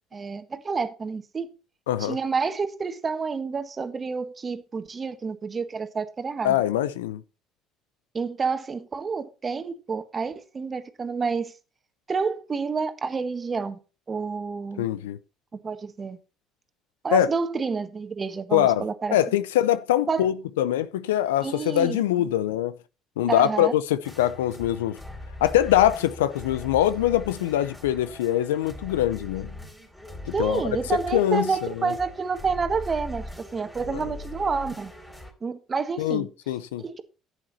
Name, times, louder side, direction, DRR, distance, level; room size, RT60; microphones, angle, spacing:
voice 1, 0.1-1.5 2.0-6.5 8.1-11.5 12.1-13.8 14.1-14.8 15.6-16.2 17.0-19.2 20.1-20.3 21.4-22.3 23.3-23.7 30.3-34.9 35.4-36.3 36.8-37.0, right 5 dB, 35° right, 1.6 m, -29 dB
voice 2, 1.9-2.2 6.4-7.2 14.8-15.2 17.1-17.3 18.5-18.8 19.1-22.8 23.2-25.0 25.4-29.5 30.3-31.9 33.9-34.0 36.0-36.8, left 12 dB, 85° left, 0.5 m, -23 dB
sound 1, 24.0-35.3, left 1 dB, 15° left, 4.0 m, -40 dB
11.0 x 8.1 x 4.2 m
hypercardioid pair, 65°, 0 cm